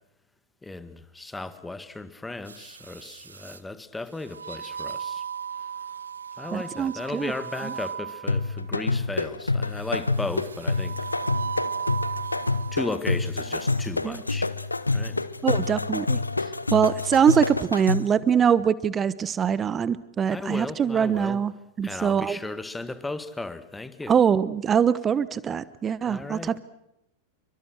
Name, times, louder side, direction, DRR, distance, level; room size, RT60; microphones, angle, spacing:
voice 1, 0.6-5.2 6.4-11.0 12.7-14.5 14.9-15.2 20.3-21.4 21.8-24.1 26.1-26.6, left 2 dB, 10° left, 1.8 m, -35 dB
sound 1, 2.5-3.6 4.3-8.6 9.7-12.9 13.4-13.6, right 7 dB, 75° right, 1.0 m, -36 dB
voice 2, 6.5-7.3 7.6-7.7 14.0-14.2 15.4-16.2 16.7-21.5 21.8-22.4 24.1-26.6, right 7 dB, 20° right, 1.0 m, -23 dB
sound 2, 8.3-18.2, left 3 dB, 80° left, 0.9 m, -27 dB
28.5 x 24.5 x 6.4 m
figure-of-eight pair, 90°, 0 cm